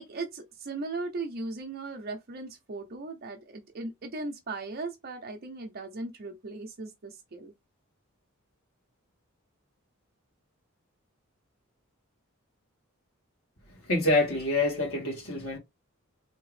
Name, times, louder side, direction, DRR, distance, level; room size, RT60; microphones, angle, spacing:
voice 1, 0.0-7.5, right 3 dB, 45° right, 0.6 m, -38 dB
voice 2, 13.9-15.6, left 2 dB, 70° left, 1.9 m, -26 dB
3.5 x 2.8 x 3.2 m
head